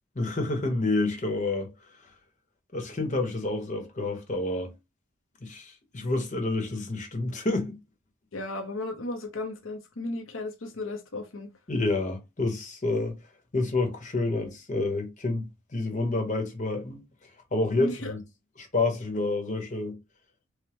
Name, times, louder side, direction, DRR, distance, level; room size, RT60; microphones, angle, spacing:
voice 1, 0.1-1.7 2.7-4.7 5.4-7.8 11.7-13.1 13.5-17.0 17.5-18.2 18.6-20.0, left 2 dB, 35° left, 0.9 m, -28 dB
voice 2, 8.3-11.5 17.8-18.1, left 2 dB, 80° left, 0.7 m, -34 dB
4.9 x 2.1 x 2.9 m
head